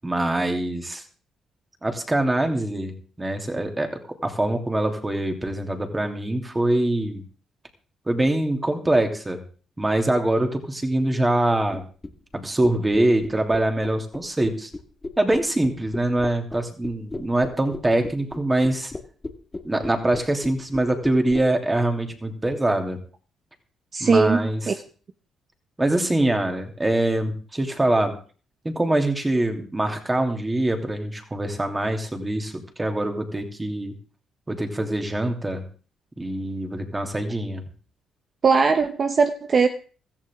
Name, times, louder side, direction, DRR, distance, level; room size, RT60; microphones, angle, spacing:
voice 1, 0.0-1.0 1.8-3.9 4.2-7.2 8.1-9.4 9.8-11.8 12.3-14.7 15.2-18.9 19.6-23.0 24.0-24.8 25.8-28.1 28.6-33.9 34.5-35.6 36.2-37.6, right 1 dB, 15° right, 2.8 m, -24 dB
sound 1, 11.7-21.5, left 2 dB, 20° left, 1.7 m, -35 dB
voice 2, 23.9-24.7 38.4-39.7, right 5 dB, 45° right, 1.0 m, -20 dB
16.0 x 14.5 x 3.7 m
cardioid pair, 90°, 0 cm